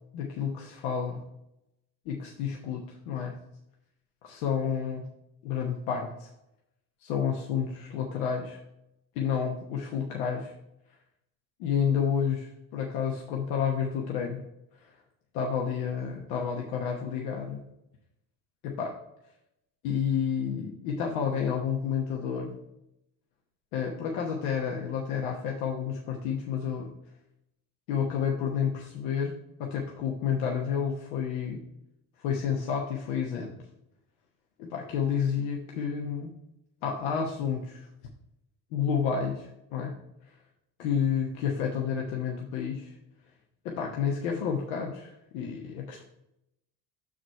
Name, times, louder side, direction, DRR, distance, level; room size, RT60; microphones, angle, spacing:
voice 1, 0.1-1.2 2.1-3.4 4.2-5.1 5.4-6.3 7.0-8.6 9.1-10.5 11.6-14.4 14.8-14.9 15.3-17.6 18.6-19.0 19.8-22.6 23.7-26.9 27.9-31.6 32.2-33.6 34.6-36.3 36.8-37.9 38.7-39.9 40.8-42.9 43.6-46.0, left 7 dB, 85° left, 0 dB, 1.1 m, -30 dB
6.3 x 5.0 x 4.5 m, 0.83 s
supercardioid pair, 75°, 47 cm